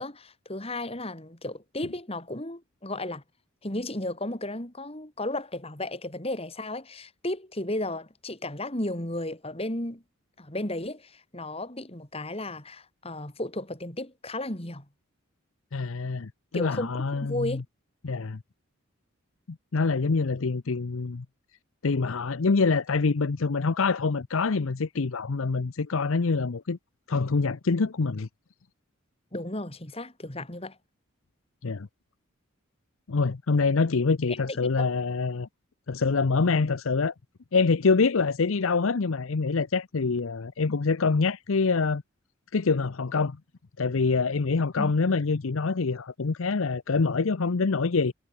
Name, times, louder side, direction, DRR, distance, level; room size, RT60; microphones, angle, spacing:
voice 1, 0.0-3.2 3.6-10.0 10.4-14.9 16.5-17.6 29.3-30.8 34.3-34.6 44.8-44.9, left 1 dB, 30° left, 3.4 m, -34 dB
voice 2, 15.7-17.6 18.0-18.4 19.5-21.3 21.8-26.8 27.1-28.3 31.6-31.9 33.1-35.5 35.9-37.1 37.5-42.0 42.5-43.4 43.8-48.1, left 4 dB, 70° left, 0.7 m, -25 dB
head